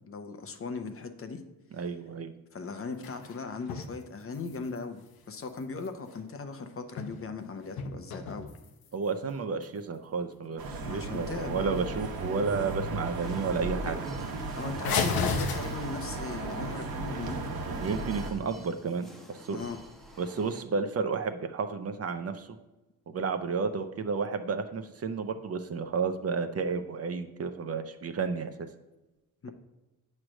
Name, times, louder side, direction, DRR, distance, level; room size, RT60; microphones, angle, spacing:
voice 1, 0.1-1.4 2.5-5.0 5.3-8.5 10.8-11.8 13.9-14.0 14.6-17.4 19.5-19.8 29.4-29.5, left 4 dB, 40° left, 7 dB, 0.7 m, -38 dB
voice 2, 1.8-2.3 8.9-14.0 17.8-19.6 20.2-22.5 23.1-28.5, right 5 dB, 45° right, 8 dB, 0.5 m, -32 dB
sound 1, 2.6-3.9 4.2-6.2 6.7-7.4 7.7-9.1 9.6-9.7 10.2-10.3 10.8-10.9 11.2-11.7 12.1-12.5 12.9-13.0 13.3-13.4 13.7-13.8 14.8-16.2 19.5-20.1, left 5 dB, 90° left, 0.8 m, -35 dB
sound 2, 10.6-18.3, right 3 dB, 80° right, 1.2 m, -35 dB
sound 3, 13.2-20.6, equal, ahead, 0.8 m, -51 dB
8.7 x 3.2 x 6.2 m, 1.1 s
cardioid pair, 130°, 35 cm